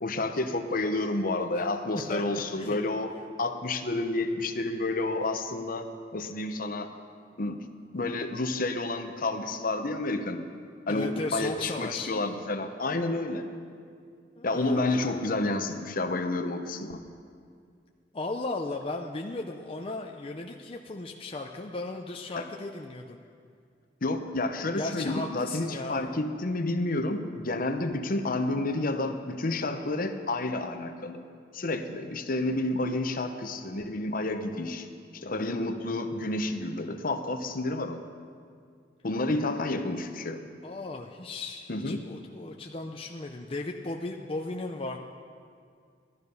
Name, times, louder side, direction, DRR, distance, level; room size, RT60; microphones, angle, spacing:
voice 1, 0.0-3.1 3.4-6.9 7.4-7.6 7.9-10.5 10.9-13.5 14.4-17.0 24.0-31.2 31.5-34.9 35.1-38.0 39.0-40.4 41.7-42.1, left 2 dB, 50° left, 7 dB, 0.9 m, -30 dB
voice 2, 2.1-2.8 10.9-12.1 14.4-15.2 18.1-23.2 24.8-26.0 40.6-45.0, left 2 dB, 30° left, 1 dB, 0.6 m, -36 dB
16.5 x 12.5 x 5.5 m, 2.2 s
head